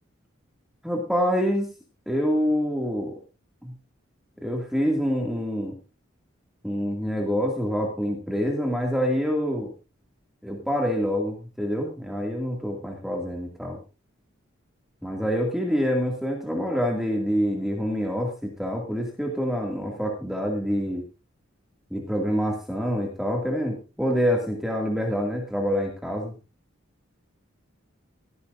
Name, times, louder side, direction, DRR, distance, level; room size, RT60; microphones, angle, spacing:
voice 1, 0.8-1.7 2.1-3.1 3.6-3.7 4.4-5.7 6.6-9.7 10.4-13.8 15.0-21.0 21.9-26.3, equal, ahead, -1 dB, 2.2 m, -26 dB
16.5 x 13.5 x 2.6 m, 0.31 s
head